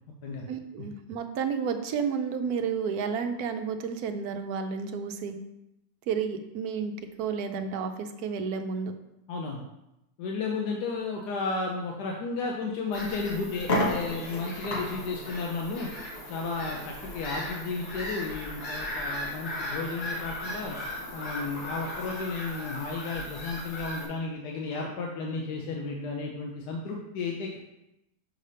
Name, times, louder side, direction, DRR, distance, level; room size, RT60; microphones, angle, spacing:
voice 1, 0.5-5.4 6.1-6.9 7.2-8.9, right 6 dB, 75° right, 7 dB, 1.1 m, -31 dB
voice 2, 9.3-9.6 10.2-15.9 16.3-20.8 21.1-27.6, left 4 dB, 90° left, 0 dB, 1.3 m, -33 dB
sound 1, 12.6-12.7 13.2-13.3 13.6-22.2, left 1 dB, 45° left, 1.1 m, -36 dB
Bird vocalization bird call bird song / Gull seagull, 12.9-24.0, left 1 dB, 75° left, 1.9 m, -38 dB
6.4 x 3.3 x 5.4 m, 0.88 s
omnidirectional pair, 1.7 m